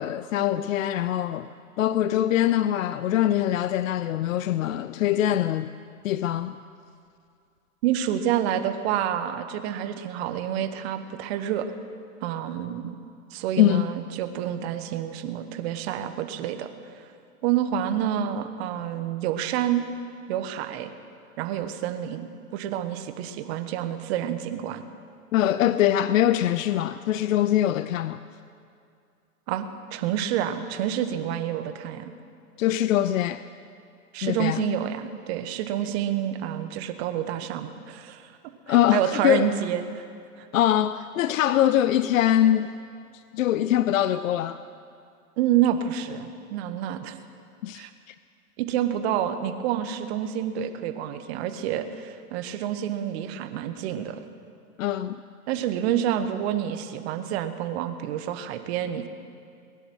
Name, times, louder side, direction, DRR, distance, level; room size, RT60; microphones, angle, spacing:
voice 1, 0.0-1.5 1.8-5.7 6.0-6.6 13.6-13.9 25.3-28.2 32.6-33.4 34.2-34.6 38.7-39.5 40.5-42.7 43.1-44.6 47.6-48.1 54.8-55.2, left 12 dB, 60° left, 14 dB, 0.5 m, -23 dB
voice 2, 7.8-11.7 12.2-13.0 13.3-16.7 17.0-17.1 17.4-19.9 20.3-20.9 21.4-22.3 22.5-24.8 29.5-32.1 34.1-38.3 38.7-40.0 40.4-40.5 45.4-47.2 47.7-47.9 48.6-54.2 55.5-59.1, right 10 dB, 45° right, 9 dB, 1.3 m, -28 dB
20.5 x 10.5 x 6.3 m, 2.4 s
hypercardioid pair, 115°, 45 cm